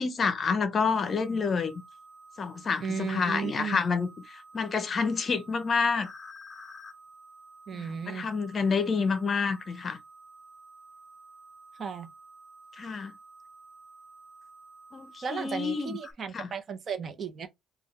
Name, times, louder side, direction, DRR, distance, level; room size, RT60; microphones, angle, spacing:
voice 1, 0.0-1.8 2.4-6.1 7.7-10.0 12.8-13.1 14.9-16.0 16.3-16.5, left 5 dB, 40° left, 0.6 m, -28 dB
sound 1, 0.9-16.1, right 1 dB, 25° left, 1.0 m, -51 dB
voice 2, 2.8-3.8 7.7-8.3 11.8-12.1 15.2-17.5, right 6 dB, 45° right, 0.8 m, -34 dB
3.4 x 2.3 x 4.1 m
cardioid pair, 95°, 0 cm